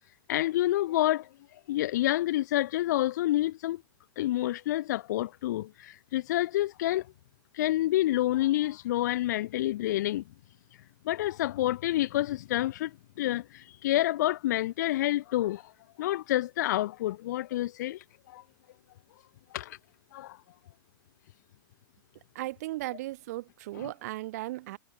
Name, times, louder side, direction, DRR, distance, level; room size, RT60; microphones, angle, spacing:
voice 1, 0.3-1.2 1.7-3.8 4.2-5.7 6.1-7.0 7.6-10.2 11.1-12.9 13.2-13.4 13.8-15.6 16.0-18.0 18.3-18.4 19.5-19.8 20.1-20.4, left 15 dB, 50° left, 2.2 m, -28 dB
voice 2, 22.3-24.8, right 17 dB, 45° right, 4.3 m, -36 dB
supercardioid pair, 165°, 12 cm